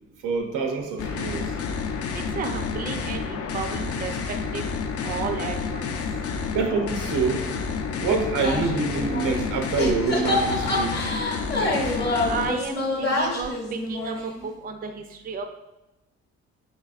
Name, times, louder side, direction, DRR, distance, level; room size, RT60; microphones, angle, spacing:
voice 1, 0.2-1.6 6.5-7.5 8.0-11.2 11.5-12.0, right 5 dB, 80° right, 3 dB, 0.7 m, -26 dB
sound 1, 1.0-12.5, left 5 dB, 50° left, 0.5 m, -30 dB
voice 2, 2.1-4.1 4.5-4.6 5.0-5.9 12.2-13.5 13.9-15.5, right 5 dB, 30° right, 5 dB, 0.4 m, -32 dB
sound 2, 8.4-9.5 9.8-14.5, left 2 dB, 35° left, 0.8 m, -27 dB
4.0 x 3.9 x 2.4 m, 0.96 s
cardioid pair, 90°, 30 cm